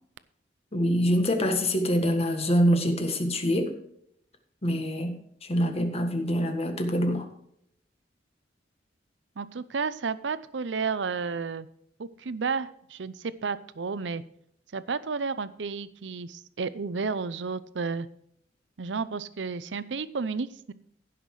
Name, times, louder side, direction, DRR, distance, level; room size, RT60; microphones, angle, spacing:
voice 1, 0.7-3.7 4.6-5.1 5.4-7.3, equal, 35° left, 5 dB, 1.6 m, -25 dB
voice 2, 9.4-11.7 12.0-14.2 14.7-18.1 18.8-20.7, right 5 dB, 75° right, 15 dB, 0.6 m, -32 dB
15.5 x 5.9 x 4.8 m, 0.70 s
head